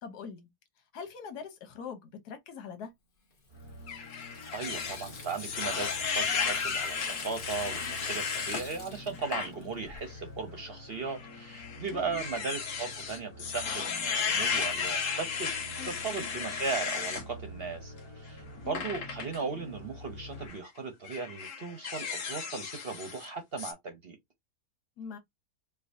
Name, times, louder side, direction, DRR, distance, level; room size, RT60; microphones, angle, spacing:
voice 1, 0.0-0.5 0.9-2.9 11.9-12.2 15.8-15.9 18.6-18.8 25.0-25.2, left 6 dB, 85° left, 1.5 m, -42 dB
Water tap faucet / Sink (filling or washing), 3.3-10.0, left 3 dB, 40° left, 1.1 m, -49 dB
sound 1, 3.5-20.5, left 1 dB, 20° left, 0.9 m, -48 dB
sound 2, 3.9-8.6 9.1-9.5 9.9-10.1 11.1-17.3 18.7-19.4 20.3-20.6 21.0-23.3 23.6-23.7, left 6 dB, 55° left, 1.2 m, -34 dB
voice 2, 4.5-15.5 15.8-24.2, right 4 dB, 50° right, 0.8 m, -37 dB
4.7 x 2.4 x 2.6 m
omnidirectional pair, 1.7 m